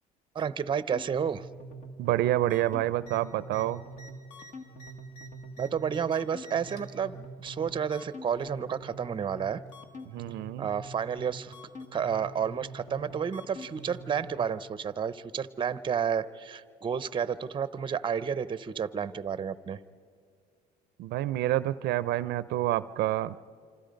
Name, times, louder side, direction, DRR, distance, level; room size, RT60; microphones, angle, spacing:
voice 1, 0.3-1.5 5.6-9.6 10.6-11.5 11.9-19.8, right 7 dB, 30° right, 16 dB, 0.6 m, -31 dB
sound 1, 0.9-14.4, right 1 dB, 45° left, 1.7 m, -45 dB
voice 2, 2.0-3.8 10.1-10.7 21.0-23.4, right 14 dB, 80° right, 17 dB, 0.5 m, -28 dB
sound 2, 3.0-3.2 3.5-3.7 3.9-6.1 6.4-7.0 7.9-8.6 9.7-9.8, right 1 dB, 65° left, 3.3 m, -51 dB
27.0 x 26.0 x 5.2 m, 2.2 s
cardioid pair, 110°, 17 cm